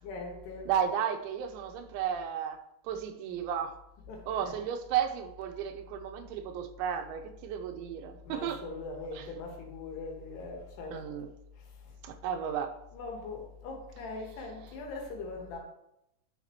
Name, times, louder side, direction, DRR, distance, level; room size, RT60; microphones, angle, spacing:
voice 1, 0.0-0.8 4.1-4.6 8.3-11.3 11.6-12.0 12.9-15.6, left 3 dB, 70° left, 1 dB, 3.1 m, -41 dB
voice 2, 0.7-2.6 2.8-3.7 4.3-8.6 10.9-11.3 12.0-12.8, right 8 dB, 90° right, 6 dB, 3.0 m, -33 dB
9.8 x 6.6 x 3.0 m, 0.81 s
omnidirectional pair, 5.4 m